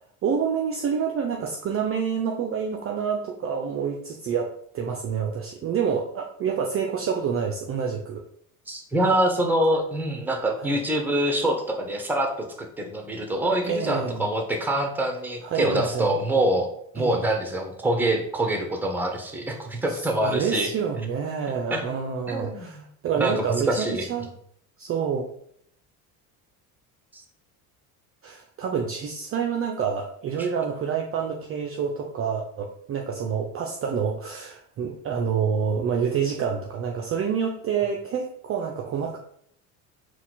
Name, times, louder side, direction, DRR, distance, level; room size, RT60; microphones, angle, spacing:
voice 1, 0.2-8.2 10.6-10.8 13.6-14.3 15.4-16.1 17.0-17.2 19.9-24.3 24.8-25.3 28.2-39.2, right 6 dB, 35° right, 2 dB, 0.5 m, -28 dB
voice 2, 8.7-20.7 21.7-21.8 22.3-22.8 23.1-24.1 27.1-27.2 30.4-30.5, right 1 dB, 5° right, 4 dB, 0.8 m, -25 dB
4.2 x 2.3 x 3.9 m, 0.68 s
supercardioid pair, 85°, 42 cm